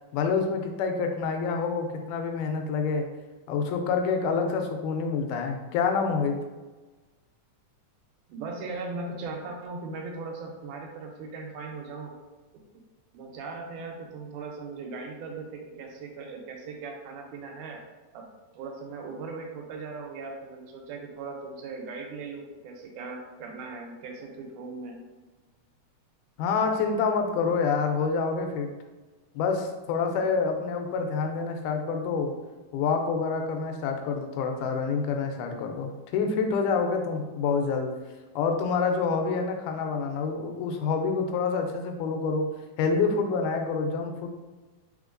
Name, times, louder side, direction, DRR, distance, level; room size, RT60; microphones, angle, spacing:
voice 1, 0.1-3.1 3.5-6.4 26.4-28.7 29.4-32.3 32.7-37.9 38.4-42.5 42.8-44.3, left 5 dB, 90° left, 4 dB, 2.1 m, -27 dB
voice 2, 8.3-12.1 13.1-17.8 18.1-18.2 18.5-25.0, right 3 dB, 85° right, 2 dB, 2.1 m, -38 dB
4.4 x 3.4 x 2.5 m, 1.2 s
omnidirectional pair, 3.5 m